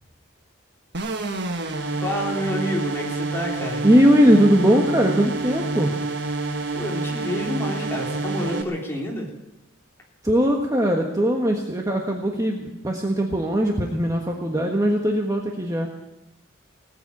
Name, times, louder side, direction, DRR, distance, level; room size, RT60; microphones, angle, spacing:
sound 1, 0.9-8.6, right 3 dB, 60° right, 1.4 m, -28 dB
voice 1, 2.0-3.8 6.7-9.3, equal, 15° left, -3 dB, 3.7 m, -28 dB
voice 2, 3.8-6.0 10.2-15.9, equal, 15° right, 1 dB, 1.3 m, -20 dB
18.5 x 8.2 x 8.6 m, 0.98 s
head